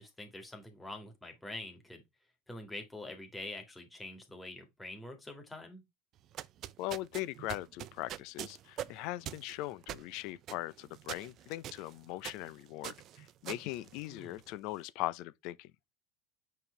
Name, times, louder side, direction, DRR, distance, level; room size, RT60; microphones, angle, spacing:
voice 1, 0.0-2.0 2.5-5.8 14.1-14.4, left 2 dB, 10° left, 1.9 m, -45 dB
sound 1, 6.2-14.6, right 12 dB, 45° right, 0.5 m, -45 dB
voice 2, 6.8-15.7, left 17 dB, 65° left, 0.6 m, -40 dB
7.2 x 4.5 x 3.2 m
supercardioid pair, 115°, 0 cm